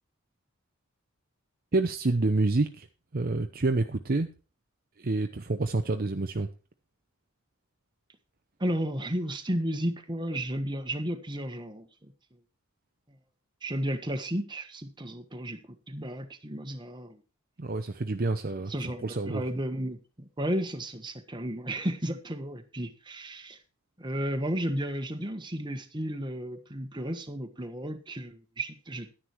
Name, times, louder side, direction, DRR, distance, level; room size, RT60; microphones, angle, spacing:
voice 1, 1.7-2.9 3.1-4.3 5.0-6.5 17.6-18.7 19.0-19.4, right 2 dB, 45° right, 6 dB, 0.8 m, -28 dB
voice 2, 8.6-12.1 13.6-17.2 18.7-23.6 24.0-29.1, right 1 dB, 20° right, 6 dB, 1.5 m, -33 dB
11.5 x 10.0 x 4.6 m, 0.33 s
head